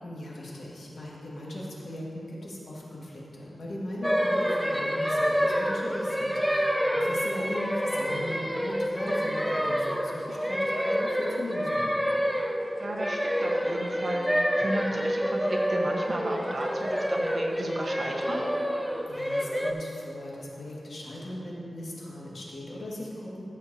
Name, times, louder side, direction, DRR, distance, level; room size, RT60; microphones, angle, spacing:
voice 1, 0.0-11.8 19.1-23.4, left 1 dB, 75° left, -5 dB, 1.9 m, -38 dB
sound 1, 4.0-19.7, equal, ahead, 0.5 m, -28 dB
voice 2, 12.8-18.4, right 1 dB, 50° right, -1 dB, 1.2 m, -34 dB
13.5 x 7.5 x 2.8 m, 2.9 s
wide cardioid pair, 105°, 0 cm